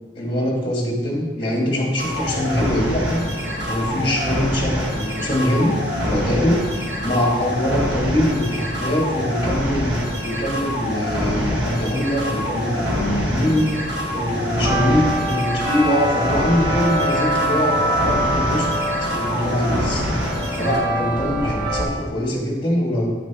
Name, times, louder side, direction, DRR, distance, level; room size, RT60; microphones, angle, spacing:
voice 1, 0.1-3.2 3.6-5.8 6.0-13.9 14.1-18.7 19.0-20.1 20.5-23.1, equal, 25° left, -2 dB, 1.7 m, -23 dB
sound 1, 2.0-20.8, equal, 65° right, 1.5 m, -25 dB
sound 2, 3.5-4.3 7.3-7.4 7.6-21.9, right 1 dB, 25° right, 1.1 m, -27 dB
9.8 x 6.0 x 2.9 m, 1.3 s
head